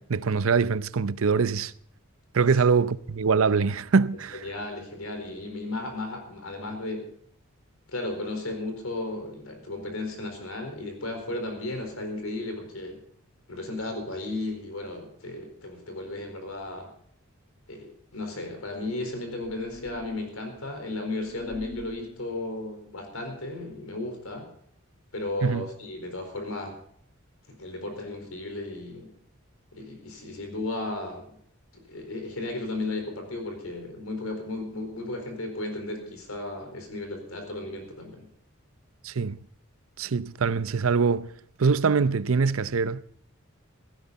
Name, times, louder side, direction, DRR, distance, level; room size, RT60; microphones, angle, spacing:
voice 1, 0.0-1.7 2.3-4.4 25.4-25.7 39.0-39.4 40.0-41.3 41.6-43.0, right 5 dB, 75° right, 0.6 m, -23 dB
voice 2, 4.4-7.1 7.9-13.0 13.5-16.9 17.7-24.5 25.1-26.8 27.5-29.1 29.7-31.4 31.7-38.3, left 2 dB, 85° left, 4.4 m, -34 dB
sound 1, 19.4-20.1 21.2-22.0, left 2 dB, 15° right, 3.2 m, -43 dB
17.0 x 15.5 x 4.1 m
head